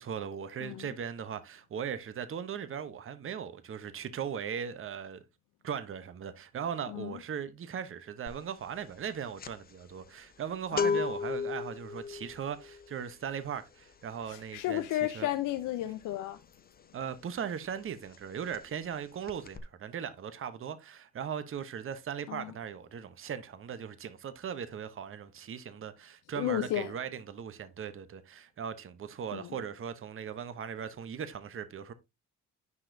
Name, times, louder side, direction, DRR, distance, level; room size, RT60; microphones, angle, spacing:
voice 1, 0.0-5.2 5.6-14.8 15.1-15.3 16.9-31.9, right 8 dB, 45° right, 0.9 m, -38 dB
voice 2, 6.9-7.2 10.7-11.0 14.3-16.4 22.3-22.5 26.3-26.9 29.3-29.6, left 13 dB, 85° left, 0.7 m, -33 dB
sound 1, 8.3-8.5 8.8-17.4 17.6-17.9 18.1-19.0 19.2-19.6, left 5 dB, 30° left, 0.7 m, -36 dB
9.6 x 5.0 x 2.6 m
cardioid pair, 90°, 30 cm